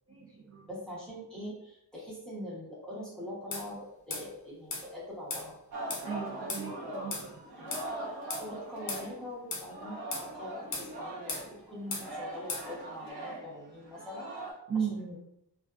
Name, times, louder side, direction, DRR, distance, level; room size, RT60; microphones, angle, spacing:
voice 1, 0.1-0.7 6.0-7.4 14.7-15.0, right 7 dB, 35° right, -7 dB, 0.6 m, -36 dB
voice 2, 0.7-5.6 7.6-7.7 8.4-14.3 14.7-15.2, left 1 dB, ahead, -8 dB, 0.8 m, -43 dB
sound 1, 3.5-3.7 4.1-4.3 4.7-4.8 5.3-5.5 5.9-6.1 6.5-6.6 7.1-7.3 7.7-7.9 8.3-8.4 8.9-9.0 9.5-9.7 10.1-10.3 10.7-10.9 11.3-11.5 11.9-12.1 12.5-12.7, left 3 dB, 50° left, 0.6 m, -36 dB
Singing, 5.7-9.3 9.6-14.5, right 1 dB, 70° right, 0.8 m, -41 dB
2.4 x 2.3 x 2.4 m, 0.80 s
wide cardioid pair, 170°, 40 cm